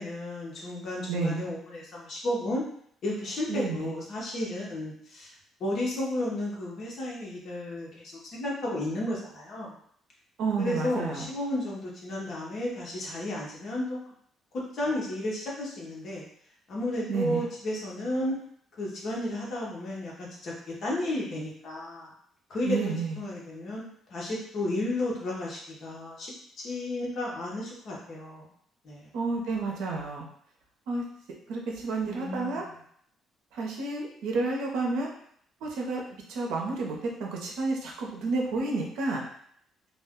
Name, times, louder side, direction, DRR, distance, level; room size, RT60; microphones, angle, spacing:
voice 1, 0.0-2.6 3.0-5.3 5.6-9.8 10.6-14.0 14.7-16.2 16.7-18.3 18.8-22.1 22.5-22.8 23.2-23.8 24.1-28.5 28.8-29.1 32.0-32.8, left 1 dB, 45° left, -4 dB, 0.8 m, -33 dB
voice 2, 1.1-1.5 3.5-3.9 10.4-11.3 17.1-17.4 22.6-23.2 29.1-30.3 30.9-31.0 31.5-32.6 33.5-35.1 35.6-36.0 36.3-39.2, right 3 dB, 85° right, -1 dB, 0.7 m, -30 dB
2.4 x 2.2 x 3.6 m, 0.65 s
cardioid pair, 170°, 0 cm